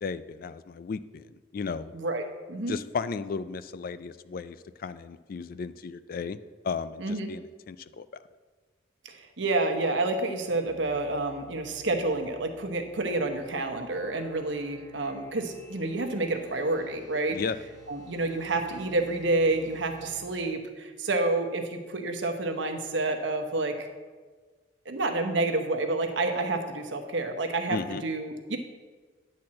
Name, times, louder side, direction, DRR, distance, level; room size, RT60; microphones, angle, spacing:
voice 1, 0.0-1.9 2.7-6.4 6.6-8.2 17.3-17.6 27.7-28.0, left 5 dB, 50° left, 14 dB, 0.3 m, -35 dB
voice 2, 1.9-2.7 7.0-7.3 9.0-17.4 17.9-23.9 24.8-28.6, right 2 dB, 75° right, 5 dB, 1.0 m, -29 dB
sound 1, 10.4-20.1, right 2 dB, 20° left, 1.6 m, -54 dB
10.0 x 4.4 x 7.5 m, 1.4 s
head